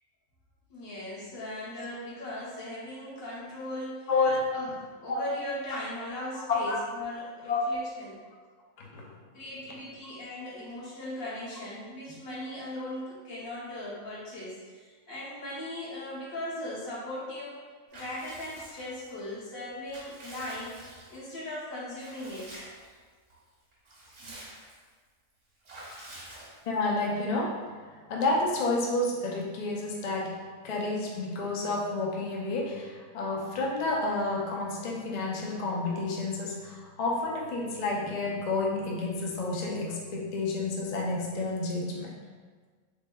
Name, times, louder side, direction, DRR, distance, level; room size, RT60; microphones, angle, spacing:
voice 1, 0.7-4.1 4.5-4.7 5.0-8.2 9.3-17.6 17.9-20.7 21.1-22.6, left 1 dB, 80° left, -8 dB, 1.5 m, -38 dB
voice 2, 4.1-4.4 5.1-5.2 6.5-6.8 7.5-7.6 8.8-9.1 10.0-10.1 26.6-27.6 27.9-42.1, left 2 dB, 65° left, -2 dB, 0.4 m, -30 dB
Water / Bathtub (filling or washing) / Liquid, 17.9-19.1 19.6-21.3 22.0-22.9 23.3-23.4 23.7-24.9 25.6-26.9, right 1 dB, 60° right, 1.2 m, -48 dB
3.4 x 3.3 x 2.2 m, 1.5 s
omnidirectional pair, 1.4 m